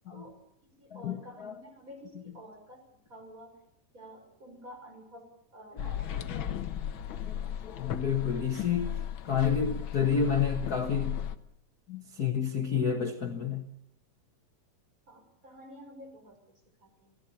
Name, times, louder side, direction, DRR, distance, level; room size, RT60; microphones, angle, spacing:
voice 1, 0.1-3.5 3.9-6.3 15.1-17.2, equal, 25° right, 6.4 m, -50 dB
sound 1, 5.8-11.4, left 10 dB, 70° left, 1.2 m, -36 dB
voice 2, 7.2-8.9 9.3-11.2 11.9-13.7, left 7 dB, 45° left, 1.3 m, -30 dB
29.0 x 18.0 x 7.2 m
omnidirectional pair, 3.8 m